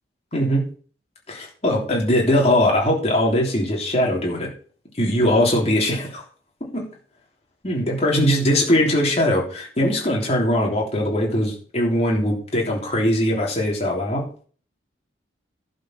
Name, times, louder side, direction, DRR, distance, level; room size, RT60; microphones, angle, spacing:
voice 1, 0.3-0.6 1.3-4.5 4.9-6.2 6.7-6.9 7.6-14.3, left 1 dB, 35° left, -1 dB, 3.3 m, -21 dB
11.5 x 5.4 x 6.4 m, 0.43 s
head